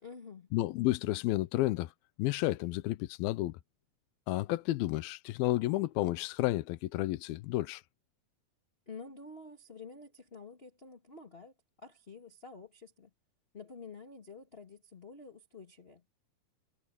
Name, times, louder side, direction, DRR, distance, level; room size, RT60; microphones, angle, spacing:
voice 1, 0.0-0.5 8.9-11.5 11.8-13.1 13.5-16.0, left 4 dB, 25° left, 1.3 m, -49 dB
voice 2, 0.5-1.9 2.2-3.6 4.3-7.8, left 17 dB, 80° left, 2.5 m, -31 dB
omnidirectional pair, 4.4 m